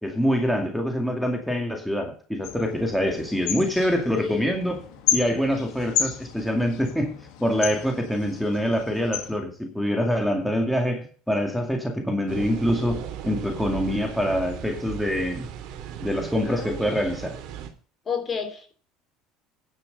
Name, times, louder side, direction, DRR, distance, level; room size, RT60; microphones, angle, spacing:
voice 1, 0.0-4.8 5.1-7.1 7.4-15.5 16.0-17.4, equal, ahead, 2 dB, 2.3 m, -25 dB
sound 1, 2.4-9.4, left 9 dB, 70° left, 2.2 m, -32 dB
voice 2, 4.2-4.6 16.5-16.9 18.1-18.7, left 6 dB, 30° left, 6 dB, 3.0 m, -31 dB
sound 2, 12.3-17.7, right 9 dB, 65° right, 2.8 m, -37 dB
10.5 x 6.7 x 6.7 m, 0.41 s
supercardioid pair, 110°, 0 cm